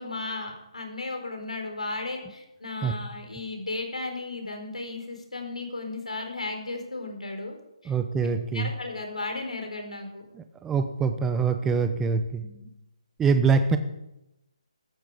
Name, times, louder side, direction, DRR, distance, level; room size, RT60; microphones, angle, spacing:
voice 1, 0.0-7.6 7.8-7.9 8.5-10.2 12.4-12.7, left 3 dB, 85° left, 4 dB, 4.4 m, -35 dB
voice 2, 7.9-8.7 10.3-12.4 13.2-13.8, right 5 dB, 10° right, 9 dB, 0.7 m, -24 dB
15.0 x 12.5 x 5.0 m, 0.92 s
figure-of-eight pair, 155°, 3 cm